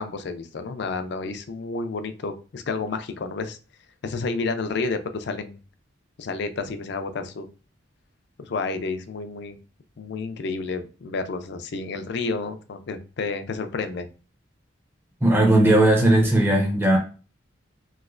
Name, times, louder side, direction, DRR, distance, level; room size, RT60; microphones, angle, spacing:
voice 1, 0.0-3.6 4.0-5.6 6.2-7.5 8.4-9.6 10.0-14.1, left 4 dB, 60° left, 0.4 m, -30 dB
voice 2, 15.2-17.0, right 1 dB, 10° right, 0.5 m, -17 dB
3.1 x 2.9 x 2.4 m
head